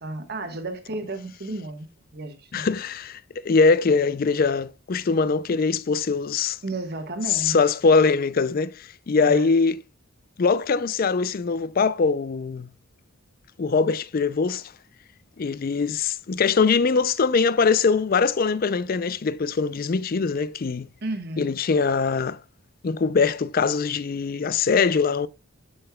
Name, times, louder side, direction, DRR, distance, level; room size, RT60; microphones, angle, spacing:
voice 1, 0.0-2.7 6.6-7.6 9.2-9.5 21.0-21.5, right 2 dB, 45° right, 1.2 m, -33 dB
voice 2, 2.5-6.6 7.3-9.8 10.4-12.7 13.6-14.7 15.4-20.9 21.4-22.4 22.8-25.3, left 4 dB, 40° left, 0.4 m, -22 dB
12.5 x 5.5 x 2.2 m
head